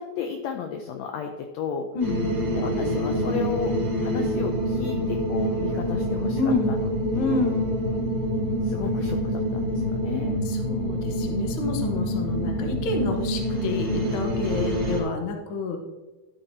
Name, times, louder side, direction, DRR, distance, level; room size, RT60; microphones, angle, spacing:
voice 1, 0.0-1.9 2.5-3.7 4.0-6.4 6.7-6.9 8.6-10.4, left 7 dB, 80° left, 4 dB, 1.5 m, -33 dB
sound 1, 2.0-15.0, equal, 20° right, 1.8 m, -26 dB
voice 2, 6.3-6.8 7.1-7.7 10.4-15.8, left 3 dB, 65° left, 3 dB, 1.3 m, -29 dB
11.5 x 7.0 x 2.7 m, 1.2 s
omnidirectional pair, 3.8 m